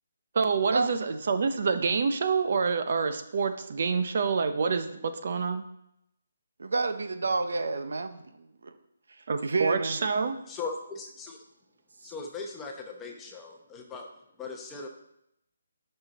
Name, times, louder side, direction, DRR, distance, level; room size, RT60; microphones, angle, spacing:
voice 1, 0.3-5.7 9.3-10.4, right 5 dB, 45° right, 9 dB, 0.7 m, -27 dB
voice 2, 6.6-8.7 9.4-10.0 12.0-12.1, right 3 dB, 75° right, 9 dB, 0.9 m, -29 dB
voice 3, 10.5-11.4 12.0-14.1 14.4-14.9, left 4 dB, 10° left, 1 dB, 0.9 m, -39 dB
10.5 x 5.6 x 4.1 m, 0.80 s
hypercardioid pair, 170°, 0 cm